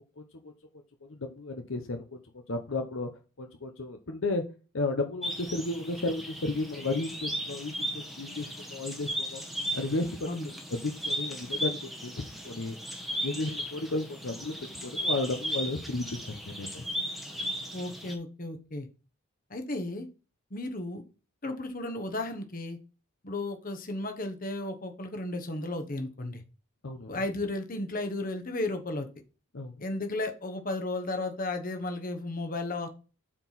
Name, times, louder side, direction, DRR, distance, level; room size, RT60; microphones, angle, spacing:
voice 1, 1.1-2.0 2.5-3.1 3.4-4.4 4.7-9.4 9.8-10.3 10.8-12.7 13.2-14.6 14.8-16.8 26.8-27.2 29.5-29.7, left 2 dB, 60° left, 4 dB, 0.8 m, -33 dB
sound 1, 5.2-18.1, equal, ahead, 1.0 m, -36 dB
voice 2, 17.7-18.9 19.5-20.1 20.5-21.0 21.4-22.8 23.2-26.4 27.1-29.1 29.8-32.9, left 2 dB, 40° left, 6 dB, 1.1 m, -34 dB
7.4 x 4.7 x 4.1 m, 0.34 s
head